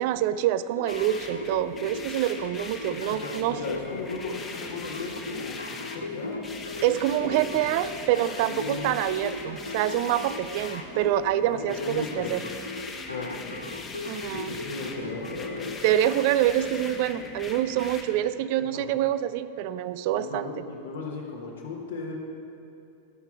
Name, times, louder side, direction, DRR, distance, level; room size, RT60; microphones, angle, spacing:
voice 1, 0.0-3.6 6.8-12.4 14.1-14.6 15.8-20.5, right 12 dB, 50° right, 14 dB, 0.3 m, -26 dB
sound 1, 0.7-15.8, left 3 dB, 85° left, 0.4 m, -38 dB
sound 2, 0.9-18.0, left 3 dB, 20° left, 1.1 m, -40 dB
voice 2, 3.1-6.4 7.2-7.5 8.4-9.0 11.5-12.4 13.1-13.7 14.3-15.7 18.3-18.9 20.1-22.2, left 3 dB, 65° left, -2 dB, 1.4 m, -36 dB
15.0 x 5.9 x 4.5 m, 2.7 s
figure-of-eight pair, 90°, 0 cm